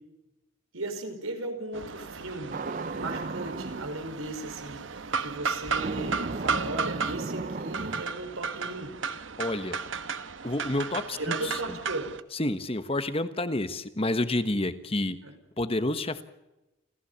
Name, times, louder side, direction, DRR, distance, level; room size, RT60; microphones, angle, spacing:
voice 1, 0.7-9.0 11.1-12.1 15.2-15.3, right 2 dB, 90° right, 7 dB, 5.1 m, -36 dB
sound 1, 1.7-12.2, right 5 dB, 65° right, 1.0 m, -34 dB
sound 2, 2.5-3.9 5.7-8.0, right 3 dB, 40° right, 0.6 m, -35 dB
voice 2, 9.4-9.8 10.4-11.8 12.3-15.2 15.6-16.2, left 1 dB, 30° left, 11 dB, 1.2 m, -29 dB
29.0 x 15.5 x 7.0 m, 0.98 s
head